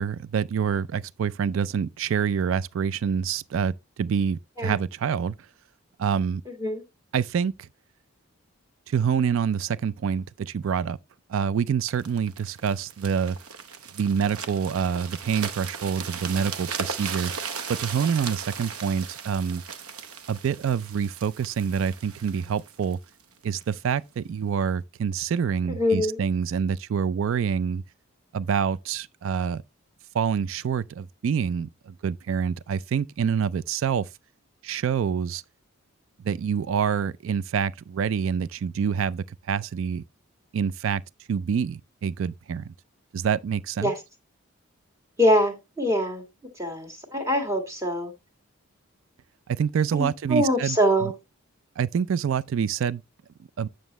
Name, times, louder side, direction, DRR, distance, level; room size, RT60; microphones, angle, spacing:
voice 1, 0.0-5.4 6.0-6.4 7.1-7.7 8.9-11.0 11.3-13.4 13.9-17.3 17.8-19.6 20.3-23.0 23.4-27.8 28.3-29.6 30.1-34.1 34.6-35.4 36.2-40.0 40.5-41.0 41.3-42.7 43.1-43.9 49.5-50.8 51.0-51.1 51.8-53.0 53.6-53.7, right 7 dB, 65° right, 0.3 m, -26 dB
voice 2, 6.5-6.8 25.7-26.2 43.8-44.0 45.2-46.2 46.6-48.1 49.9-51.1, equal, 15° right, 1.8 m, -24 dB
sound 1, 11.9-23.7 24.3-24.5, right 6 dB, 85° right, 0.8 m, -37 dB
9.2 x 6.3 x 3.0 m
head